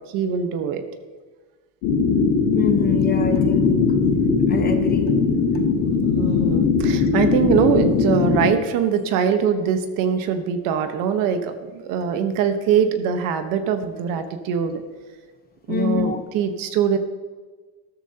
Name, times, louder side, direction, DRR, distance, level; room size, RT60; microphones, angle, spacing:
voice 1, 0.1-0.9 6.0-14.8 15.7-17.0, right 7 dB, 60° right, 8 dB, 1.2 m, -22 dB
sound 1, 1.8-8.5, left 5 dB, 90° left, 1.9 m, -19 dB
voice 2, 2.5-3.8 4.5-5.1 15.7-16.2, left 6 dB, 25° left, 7 dB, 0.9 m, -25 dB
13.5 x 13.0 x 2.9 m, 1.4 s
cardioid pair, 150°, 38 cm